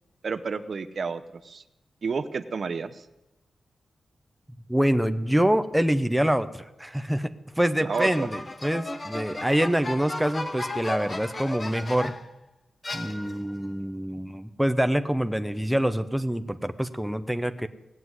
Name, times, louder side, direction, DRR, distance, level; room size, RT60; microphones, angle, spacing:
voice 1, 0.2-1.6 2.0-3.1 7.8-8.3, right 5 dB, 50° right, 13 dB, 0.8 m, -31 dB
voice 2, 4.7-7.3 7.6-12.1 12.9-17.7, equal, ahead, 9 dB, 0.6 m, -25 dB
sound 1, 7.9-12.3 12.8-13.6, left 2 dB, 25° left, 1.2 m, -35 dB
18.0 x 7.7 x 9.6 m, 0.96 s
wide cardioid pair, 150°, 0 cm